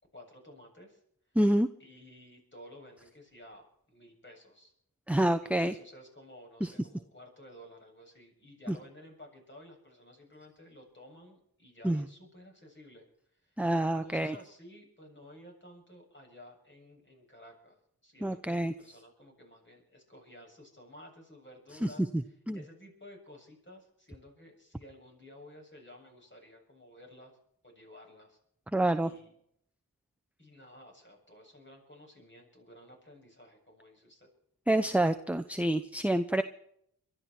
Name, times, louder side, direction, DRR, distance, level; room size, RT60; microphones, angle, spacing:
voice 1, 0.1-1.0 1.8-4.7 5.1-13.1 13.4-13.6 14.0-27.4 27.6-28.4 29.0-29.4 30.4-34.3, left 1 dB, 30° left, 2 dB, 7.6 m, -53 dB
voice 2, 1.3-1.7 5.1-5.7 6.6-6.7 8.7-8.8 11.8-12.0 13.6-14.3 18.2-18.7 21.8-22.2 22.5-22.6 28.7-29.1 34.7-36.4, right 1 dB, 5° right, 8 dB, 0.8 m, -27 dB
23.0 x 12.5 x 4.5 m, 0.70 s
cardioid pair, 45°, 37 cm